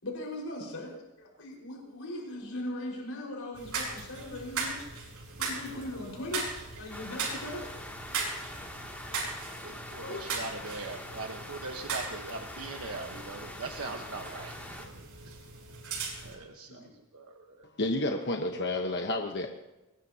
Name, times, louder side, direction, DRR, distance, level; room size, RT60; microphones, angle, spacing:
voice 1, 0.0-4.8 5.4-6.5 6.8-7.7 10.0-10.2 16.6-16.9, left 1 dB, 70° left, -1 dB, 5.2 m, -39 dB
sound 1, 3.5-16.3, right 4 dB, 90° right, 6.8 m, -39 dB
sound 2, 6.9-14.9, left 1 dB, 10° left, 2.6 m, -44 dB
voice 2, 9.6-15.4 16.2-17.6, right 3 dB, 70° right, 3 dB, 1.3 m, -41 dB
voice 3, 17.6-19.5, left 2 dB, 55° left, 3 dB, 1.2 m, -30 dB
23.5 x 20.5 x 2.9 m, 1.0 s
head